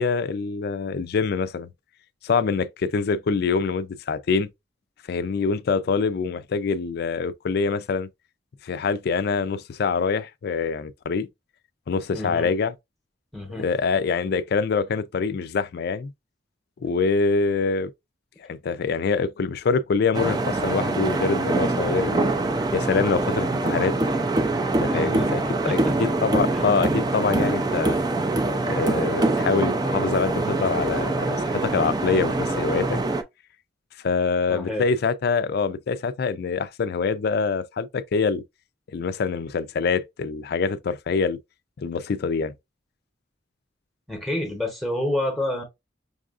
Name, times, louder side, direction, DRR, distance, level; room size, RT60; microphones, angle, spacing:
voice 1, 0.0-1.7 2.2-4.5 5.1-8.1 8.6-11.3 11.9-12.7 13.5-16.1 16.8-17.9 18.4-22.3 22.7-23.9 24.8-25.4 25.7-28.0 28.6-33.0 34.0-38.4 38.9-41.4 41.8-42.5, left 5 dB, 55° left, 0.4 m, -25 dB
voice 2, 12.1-12.5 13.3-13.7 24.9-25.3 25.7-25.9 26.5-26.6 34.5-34.9 44.1-45.6, left 1 dB, ahead, 0.9 m, -28 dB
sound 1, 20.1-33.2, right 2 dB, 20° right, 0.4 m, -24 dB
5.3 x 2.4 x 2.4 m
head